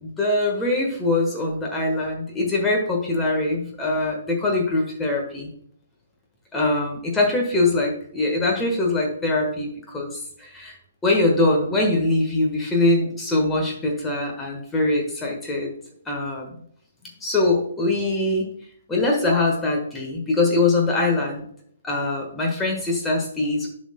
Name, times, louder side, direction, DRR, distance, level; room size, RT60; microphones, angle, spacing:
voice 1, 0.0-5.5 6.5-10.7 11.0-15.7 16.1-16.6 17.2-18.5 18.9-21.4 21.8-23.7, left 2 dB, 10° left, -1 dB, 1.4 m, -23 dB
11.5 x 6.3 x 2.2 m, 0.65 s
figure-of-eight pair, 125°, 0 cm